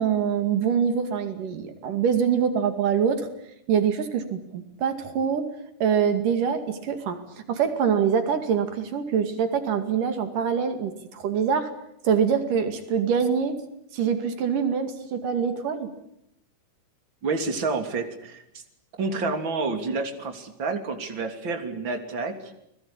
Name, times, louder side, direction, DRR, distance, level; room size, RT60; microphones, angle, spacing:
voice 1, 0.0-3.3 3.7-5.5 5.8-7.2 7.5-11.7 12.0-13.6 13.9-15.9, right 7 dB, 85° right, 8 dB, 4.0 m, -24 dB
voice 2, 17.2-18.6 19.0-22.5, right 3 dB, 35° right, 6 dB, 3.7 m, -29 dB
29.5 x 21.0 x 8.8 m, 0.77 s
omnidirectional pair, 3.6 m